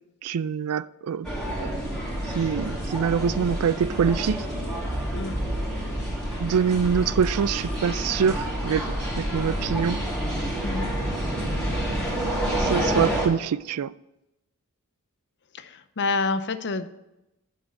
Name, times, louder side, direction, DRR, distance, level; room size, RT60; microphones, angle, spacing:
voice 1, 0.2-1.3 1.6-1.7 2.3-4.5 6.4-10.0 12.6-13.9, right 7 dB, 80° right, 0.4 m, -25 dB
sound 1, 1.2-13.3, right 1 dB, 5° left, 2.3 m, -28 dB
voice 2, 10.6-10.9 15.5-16.9, left 3 dB, 55° left, 0.6 m, -28 dB
7.3 x 6.1 x 7.1 m
head